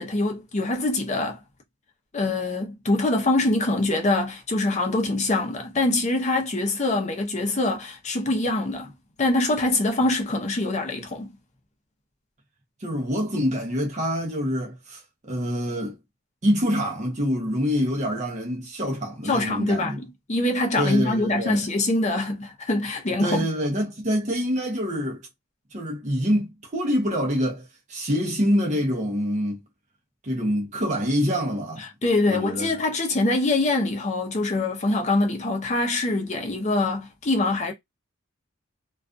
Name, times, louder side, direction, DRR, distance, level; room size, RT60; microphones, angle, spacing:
voice 1, 0.0-1.4 2.1-8.9 9.2-11.3 19.3-19.9 20.3-23.5 32.0-37.7, left 2 dB, 35° left, 0.6 m, -24 dB
voice 2, 12.8-16.0 16.4-20.0 20.8-21.7 23.2-25.2 25.7-29.6 30.2-31.9 32.3-32.7, equal, 35° right, 0.6 m, -26 dB
2.3 x 2.3 x 2.5 m
head